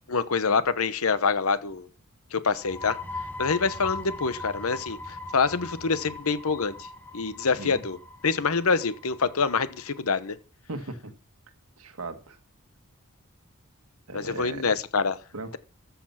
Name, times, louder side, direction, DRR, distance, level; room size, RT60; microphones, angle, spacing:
voice 1, 0.1-1.9 2.3-3.0 3.4-6.9 7.1-8.0 8.2-10.4 14.1-15.2, left 5 dB, 75° left, 1.0 m, -26 dB
sound 1, 2.5-10.0, left 3 dB, 10° left, 1.4 m, -40 dB
voice 2, 10.7-11.1 11.8-12.4 14.1-14.8 15.3-15.6, right 2 dB, 85° right, 1.7 m, -37 dB
14.0 x 7.0 x 5.8 m
head